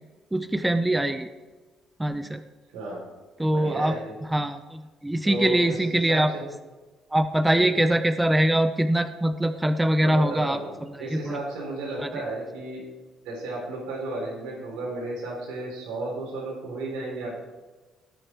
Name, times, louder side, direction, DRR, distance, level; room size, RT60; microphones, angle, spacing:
voice 1, 0.3-1.3 2.0-2.4 3.4-6.3 7.1-10.6 10.9-11.4 12.0-12.1, right 1 dB, 10° right, 10 dB, 0.7 m, -23 dB
voice 2, 3.5-4.1 5.2-5.8 6.1-6.4 7.5-7.7 10.0-12.8 13.2-17.4, right 2 dB, 85° right, -4 dB, 3.8 m, -33 dB
18.0 x 6.6 x 4.5 m, 1.2 s
cardioid pair, 90°, 0 cm